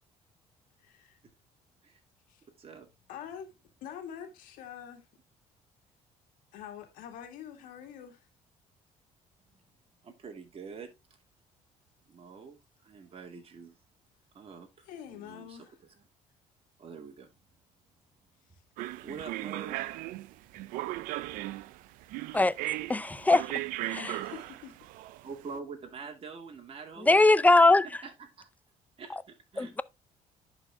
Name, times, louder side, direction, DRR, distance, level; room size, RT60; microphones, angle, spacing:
voice 1, 0.8-1.2 2.3-2.4 3.1-3.5 3.8-5.1 6.5-8.2 14.9-15.8 18.5-18.6 24.0-24.8, left 9 dB, 80° left, 2.1 m, -45 dB
voice 2, 10.0-10.9 12.1-12.6 12.8-13.8 14.3-15.9 16.8-17.3 19.0-19.9 25.2-27.7 28.0-28.5 29.0-29.7, right 5 dB, 45° right, 2.6 m, -45 dB
sound 1, 18.8-25.5, right 17 dB, 85° right, 0.5 m, -37 dB
voice 3, 22.9-23.5 23.9-24.0 27.0-27.9 29.6-29.8, left 2 dB, 10° left, 0.5 m, -21 dB
11.0 x 4.5 x 3.6 m
supercardioid pair, 85°, 14 cm